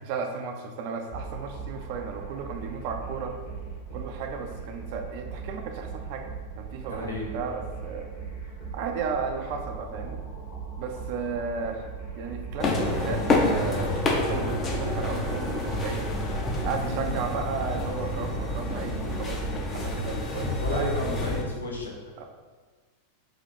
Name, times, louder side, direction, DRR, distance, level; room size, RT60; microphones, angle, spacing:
voice 1, 0.0-3.3 3.9-6.3 6.6-8.1 8.7-10.2 10.8-11.8 12.1-16.1 16.6-20.9 22.2-22.3, right 5 dB, 45° right, 4 dB, 0.4 m, -34 dB
sound 1, 1.1-19.9, right 5 dB, 45° left, 1.3 m, -39 dB
voice 2, 6.9-7.3 16.8-17.2 20.6-21.9, left 1 dB, 75° left, -1 dB, 0.7 m, -32 dB
sound 2, 12.6-21.4, left 2 dB, 25° left, 0.6 m, -28 dB
3.8 x 2.6 x 4.2 m, 1.4 s
figure-of-eight pair, 90°, 0 cm